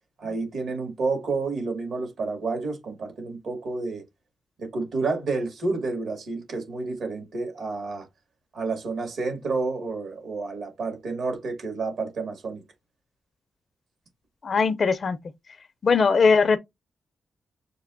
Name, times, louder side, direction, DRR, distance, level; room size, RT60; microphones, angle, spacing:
voice 1, 0.2-4.0 4.6-8.1 8.5-12.6, right 3 dB, 75° right, 1.9 m, -30 dB
voice 2, 14.4-15.2 15.8-16.6, left 5 dB, 55° left, 0.4 m, -20 dB
6.6 x 2.8 x 2.5 m
cardioid pair, 95°, 0 cm